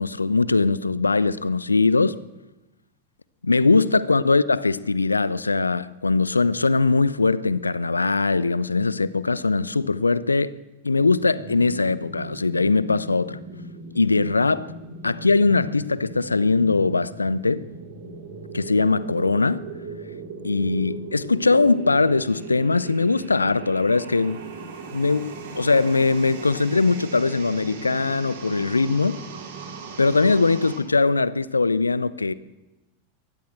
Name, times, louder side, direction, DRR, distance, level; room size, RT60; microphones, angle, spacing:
voice 1, 0.0-2.2 3.4-10.5 10.8-13.4 13.9-14.7 15.0-17.7 18.5-19.6 20.4-24.4 24.9-29.2 30.0-32.3, left 3 dB, 80° left, 0.9 m, -21 dB
sound 1, 10.9-30.8, right 4 dB, 55° right, 6.2 m, -38 dB
23.0 x 19.0 x 7.8 m
figure-of-eight pair, 90°, 0 cm